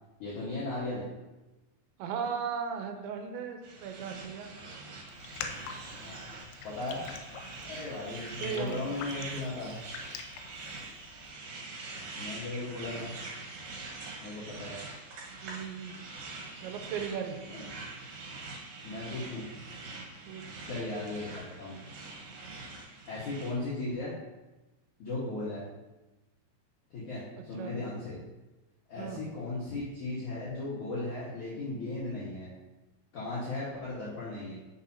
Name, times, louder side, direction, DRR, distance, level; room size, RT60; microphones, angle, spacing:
voice 1, 0.2-1.0 6.0-6.4 6.6-7.0 7.6-9.8 12.2-13.1 14.2-14.8 17.5-17.7 18.8-19.4 20.7-21.8 23.1-24.1 25.0-25.6 26.9-28.2 28.9-32.5 33.1-34.5, left 2 dB, 55° left, -9 dB, 2.4 m, -36 dB
voice 2, 2.0-4.5 8.4-9.0 15.4-16.0 16.6-17.4 20.3-20.4 27.5-27.8 29.0-29.2, right 7 dB, 85° right, 5 dB, 3.1 m, -36 dB
sound 1, 3.6-23.5, right 3 dB, 65° right, 2.9 m, -44 dB
Raindrop, 5.1-11.3, left 6 dB, 90° left, 2.9 m, -45 dB
11.0 x 6.0 x 2.9 m, 1.1 s
omnidirectional pair, 5.1 m